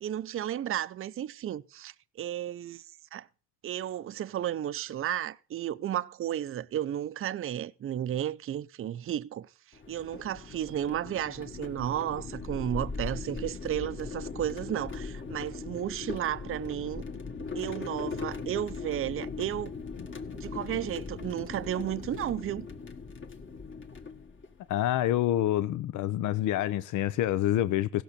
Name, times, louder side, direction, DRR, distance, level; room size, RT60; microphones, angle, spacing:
voice 1, 0.0-2.9 3.1-3.3 3.6-17.0 17.5-19.7 20.3-22.7, right 11 dB, 45° right, 0.5 m, -33 dB
sound 1, 9.7-24.7, left 4 dB, 40° left, 1.7 m, -39 dB
voice 2, 24.7-28.0, left 13 dB, 80° left, 0.6 m, -27 dB
16.0 x 6.1 x 6.7 m
cardioid pair, 90°, 30 cm